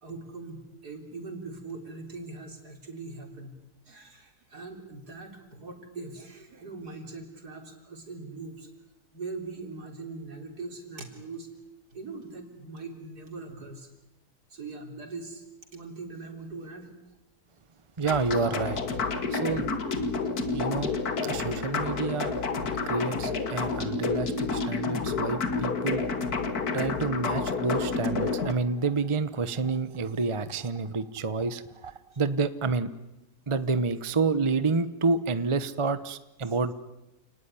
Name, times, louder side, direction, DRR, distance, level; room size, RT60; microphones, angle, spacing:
voice 1, 0.0-3.6 3.9-8.7 9.1-11.5 11.9-13.9 14.5-15.4 15.7-16.9 32.1-32.2 36.5-36.6, right 3 dB, 75° right, 4 dB, 4.2 m, -41 dB
sound 1, 18.0-28.5, left 4 dB, 70° left, 2.3 m, -30 dB
voice 2, 18.0-18.8 19.3-19.7 20.5-20.9 21.2-22.4 22.9-26.0 26.7-32.9 33.5-36.7, right 4 dB, 25° right, 13 dB, 0.9 m, -29 dB
29.0 x 19.0 x 9.9 m, 0.96 s
omnidirectional pair, 1.7 m